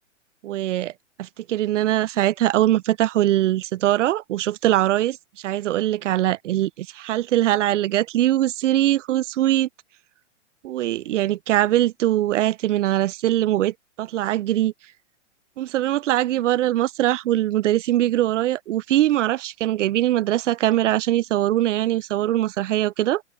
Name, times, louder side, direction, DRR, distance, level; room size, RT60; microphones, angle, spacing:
voice 1, 0.4-0.9 1.2-9.7 10.6-14.7 15.6-23.2, right 14 dB, 75° right, 0.6 m, -22 dB
hypercardioid pair, 125°, 37 cm